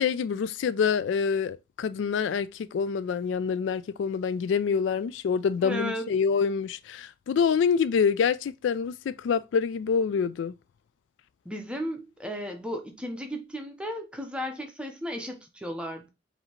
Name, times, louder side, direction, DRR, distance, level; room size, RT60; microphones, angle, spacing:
voice 1, 0.0-10.5, left 6 dB, 80° left, 0.3 m, -26 dB
voice 2, 5.6-6.1 11.4-16.1, equal, 5° right, 0.7 m, -35 dB
4.9 x 2.7 x 2.9 m
head